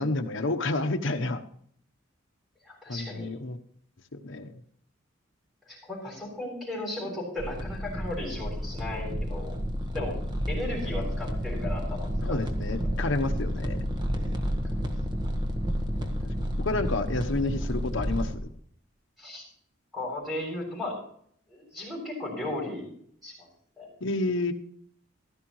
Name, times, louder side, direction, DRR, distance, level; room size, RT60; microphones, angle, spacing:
voice 1, 0.0-1.4 2.9-3.6 4.1-4.5 12.2-13.8 16.0-16.2 16.6-18.5 24.0-24.5, left 2 dB, 65° left, 5 dB, 1.0 m, -30 dB
voice 2, 2.6-3.3 5.7-9.5 9.9-10.1 10.5-12.4 19.2-19.4 19.9-21.0 21.5-22.9 23.2-23.5 23.8-23.9, left 1 dB, ahead, -5 dB, 6.9 m, -35 dB
sound 1, 7.4-18.4, equal, 20° right, 1.3 m, -31 dB
15.5 x 13.0 x 3.2 m, 0.64 s
head